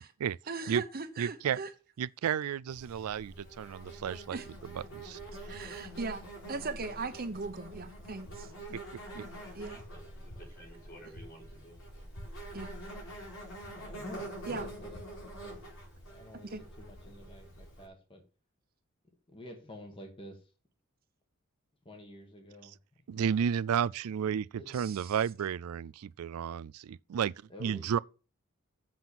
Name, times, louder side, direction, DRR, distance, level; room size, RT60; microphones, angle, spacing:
voice 1, 0.5-1.7 4.3-4.5 5.5-6.2 6.5-8.8 9.1-9.3 9.5-9.8 12.5-12.7 14.5-14.7 16.5-16.6 24.8-25.0, right 4 dB, 45° right, 1.0 m, -39 dB
voice 2, 1.2-1.6 2.0-5.2 5.5-5.7 9.2-9.3 23.1-24.5 24.7-27.3 27.6-28.0, right 8 dB, 90° right, 0.4 m, -32 dB
Insect, 2.7-17.8, right 1 dB, 65° left, 4.4 m, -46 dB
voice 3, 9.4-11.8, equal, 45° left, 5.3 m, -53 dB
voice 4, 13.7-15.7 16.1-18.2 19.3-20.5 21.9-22.8 23.1-23.4 24.6-24.7 27.5-28.0, equal, 25° left, 1.7 m, -49 dB
7.7 x 5.9 x 7.2 m
head